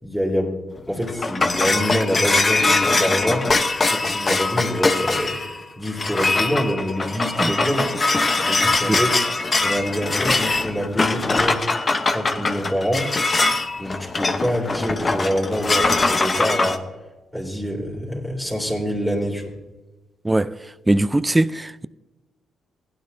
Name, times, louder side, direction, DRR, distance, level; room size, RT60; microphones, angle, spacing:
voice 1, 0.0-3.5 3.9-5.4 5.8-7.9 8.4-9.1 9.6-11.7 12.1-13.1 13.8-16.8 17.3-19.6, equal, 5° left, 3.0 m, -25 dB
sound 1, 0.8-16.8, left 3 dB, 40° left, 1.0 m, -22 dB
voice 2, 20.9-21.9, right 2 dB, 15° right, 0.4 m, -20 dB
16.0 x 9.8 x 2.7 m
supercardioid pair, 55°, 0 cm